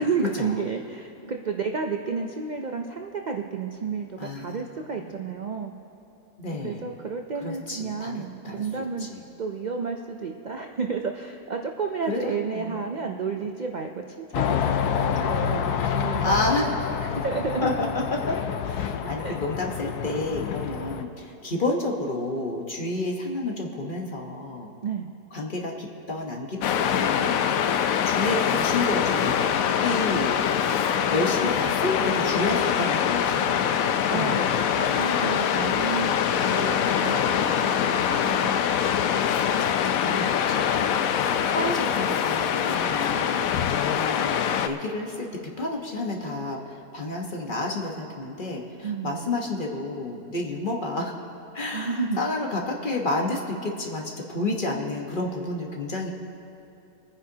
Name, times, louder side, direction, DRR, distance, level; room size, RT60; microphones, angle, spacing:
voice 1, 0.0-5.7 6.5-9.1 9.4-13.9 14.2-16.7 17.1-17.7 19.2-19.4 24.8-25.1 34.1-36.2 36.5-38.5 48.8-49.3 51.7-52.2, right 5 dB, 70° right, 3 dB, 0.4 m, -31 dB
voice 2, 4.2-4.6 5.0-5.3 6.4-6.8 7.4-8.7 9.0-9.2 12.1-12.9 16.2-16.8 17.1-17.2 17.6-18.3 18.6-24.7 25.3-27.4 28.0-29.4 29.8-30.4 31.1-34.5 34.9-35.0 39.4-40.9 41.5-43.5 43.9-51.1 51.5-56.1, left 2 dB, 35° left, 0 dB, 1.2 m, -30 dB
sound 1, 14.3-21.0, left 8 dB, 90° left, 1.2 m, -28 dB
Waves surf, 26.6-44.7, left 8 dB, 70° left, 1.0 m, -24 dB
25.5 x 9.8 x 2.8 m, 2.9 s
omnidirectional pair, 1.6 m